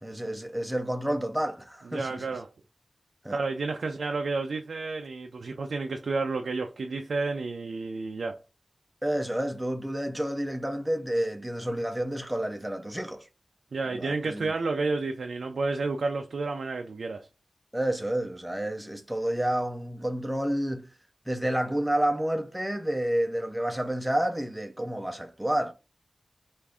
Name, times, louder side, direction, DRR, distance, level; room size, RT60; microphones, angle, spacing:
voice 1, 0.0-2.2 3.2-3.4 9.0-13.3 13.9-14.5 17.7-20.8 21.3-25.7, right 1 dB, 5° right, 0.5 m, -29 dB
voice 2, 1.8-2.5 3.3-8.4 13.7-17.3, right 3 dB, 85° right, 0.3 m, -31 dB
3.5 x 2.5 x 3.4 m
wide cardioid pair, 95°, 0 cm